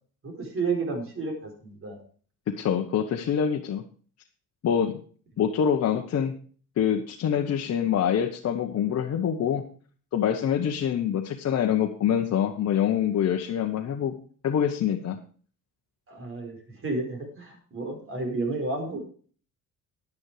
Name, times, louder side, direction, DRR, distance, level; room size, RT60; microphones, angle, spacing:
voice 1, 0.2-2.0 16.1-16.6 16.8-19.0, right 3 dB, 40° right, 3 dB, 4.6 m, -31 dB
voice 2, 2.5-3.8 4.6-5.0 5.4-6.3 6.8-9.6 10.1-14.1 14.4-15.2, left 8 dB, 50° left, 2 dB, 1.1 m, -25 dB
10.5 x 9.6 x 4.9 m, 0.43 s
cardioid pair, 135°, 34 cm